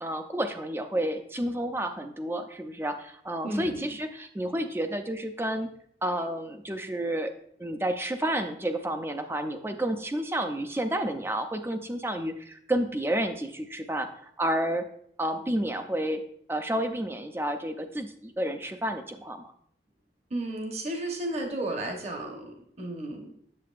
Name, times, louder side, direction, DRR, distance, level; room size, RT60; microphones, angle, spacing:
voice 1, 0.0-5.7 6.0-7.3 7.6-14.9 15.2-16.2 16.5-19.5, right 1 dB, 15° right, 7 dB, 0.4 m, -30 dB
voice 2, 3.4-3.9 20.3-23.3, right 1 dB, 35° right, 2 dB, 1.0 m, -33 dB
7.7 x 7.4 x 2.4 m, 0.69 s
head